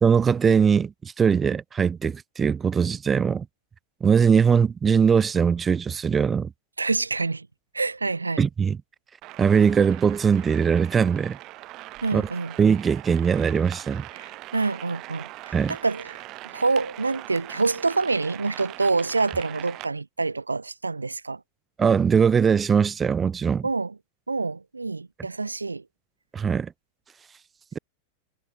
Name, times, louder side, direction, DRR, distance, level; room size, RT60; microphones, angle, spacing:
voice 1, 0.0-3.5 4.0-6.5 8.4-8.8 9.4-11.4 12.1-12.2 12.6-14.0 15.5-15.8 21.8-23.6 26.3-26.7, right 6 dB, 20° right, 0.4 m, -21 dB
voice 2, 6.8-7.5 7.7-8.5 12.0-12.6 14.1-21.4 23.6-24.0 24.3-25.8, right 3 dB, 80° right, 0.9 m, -27 dB
sound 1, 9.2-19.9, right 18 dB, 40° right, 2.2 m, -41 dB
figure-of-eight pair, 90°, 0 cm